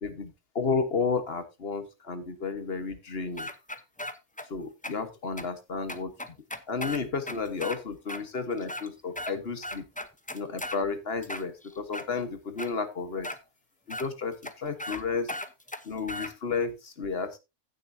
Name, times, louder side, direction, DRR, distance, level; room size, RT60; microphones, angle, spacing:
voice 1, 0.0-3.5 4.5-6.1 6.7-9.8 10.3-13.3 13.9-15.3 15.8-17.4, left 4 dB, 50° left, 1.5 m, -32 dB
sound 1, 3.4-4.5 4.8-4.9 5.4-5.5 5.9-7.8 8.1-8.2 8.6-9.3 9.6-10.8 11.2-12.1 12.6-12.7 13.2-13.4 13.9-14.1 14.4-14.5 14.8-15.0 15.3-16.3, left 1 dB, 10° left, 0.6 m, -36 dB
15.5 x 6.9 x 2.7 m
omnidirectional pair, 1.4 m